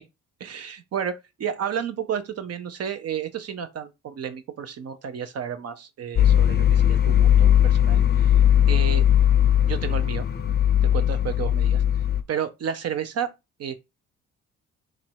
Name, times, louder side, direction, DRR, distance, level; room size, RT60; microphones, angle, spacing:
voice 1, 0.4-8.3 8.7-9.0 9.6-10.3 10.9-11.8 12.3-13.3 13.6-13.8, right 8 dB, 55° right, 0.7 m, -31 dB
sound 1, 6.1-12.2, left 10 dB, 35° left, 0.6 m, -19 dB
3.1 x 2.7 x 4.5 m
cardioid pair, 90°, 30 cm